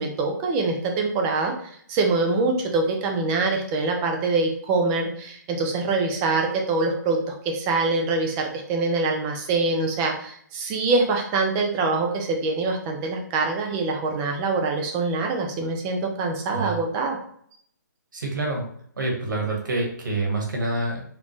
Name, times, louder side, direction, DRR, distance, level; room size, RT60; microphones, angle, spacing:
voice 1, 0.0-17.2, right 3 dB, 10° right, 2 dB, 0.4 m, -24 dB
voice 2, 16.5-16.8 18.1-18.7 19.0-21.0, right 2 dB, 80° right, 0 dB, 1.7 m, -27 dB
5.2 x 2.5 x 3.1 m, 0.63 s
hypercardioid pair, 170°, 10 cm